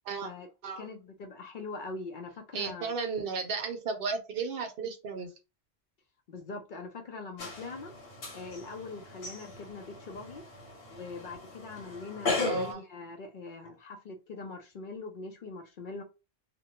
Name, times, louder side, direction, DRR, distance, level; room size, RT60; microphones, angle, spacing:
voice 1, 0.8-2.9 6.3-7.9 8.3-10.4 10.9-16.0, left 3 dB, 60° left, 0.6 m, -42 dB
voice 2, 2.5-5.3 12.4-12.8, right 4 dB, 65° right, 0.7 m, -34 dB
sound 1, 7.4-12.7, left 3 dB, 75° left, 1.3 m, -37 dB
2.6 x 2.1 x 2.8 m
omnidirectional pair, 1.1 m